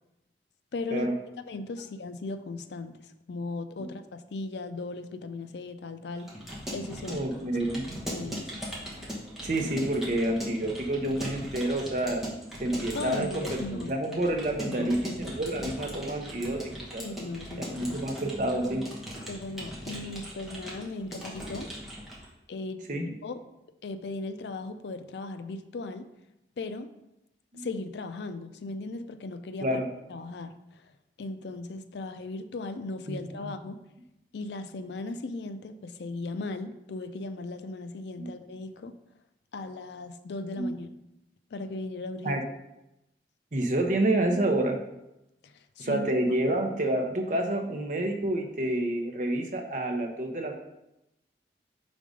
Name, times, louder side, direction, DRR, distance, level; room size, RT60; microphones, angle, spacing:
voice 1, 0.7-1.1 1.5-6.3 6.7-7.2 8.1-8.5 12.9-13.9 14.6-14.9 17.0-18.0 19.3-21.7 22.5-23.4 23.8-26.1 26.6-26.9 27.5-29.8 30.1-30.9 31.2-33.8 34.3-39.0 39.5-40.9 41.5-42.4 45.4-46.1, left 3 dB, 75° left, 10 dB, 0.4 m, -37 dB
Keyboard (musical) / Computer keyboard, 6.2-22.3, equal, ahead, 1.1 m, -39 dB
voice 2, 7.0-8.0 9.4-12.2 12.6-17.0 17.7-18.9 22.9-23.0 27.5-27.7 29.6-29.9 33.1-33.5 38.2-38.3 40.6-40.7 42.2-42.4 43.5-44.8 45.8-50.6, right 1 dB, 45° right, 3 dB, 0.8 m, -28 dB
5.2 x 3.7 x 5.1 m, 0.89 s
head